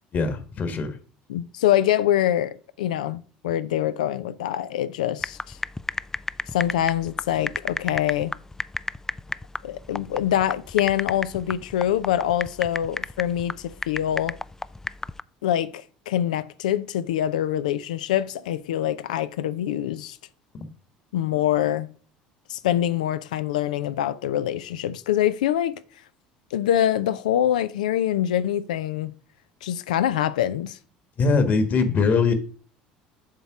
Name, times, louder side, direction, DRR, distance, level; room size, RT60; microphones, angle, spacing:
voice 1, 0.1-1.0 31.2-32.3, left 4 dB, 45° left, 1.5 m, -21 dB
voice 2, 1.3-5.6 6.5-8.4 9.6-14.4 15.4-20.2 21.1-21.9 22.5-25.7 26.5-29.1 29.6-30.8, left 11 dB, 80° left, 0.5 m, -24 dB
sound 1, 5.2-15.2, left 2 dB, 10° left, 0.3 m, -32 dB
7.6 x 4.2 x 5.9 m
hypercardioid pair, 70°, 4 cm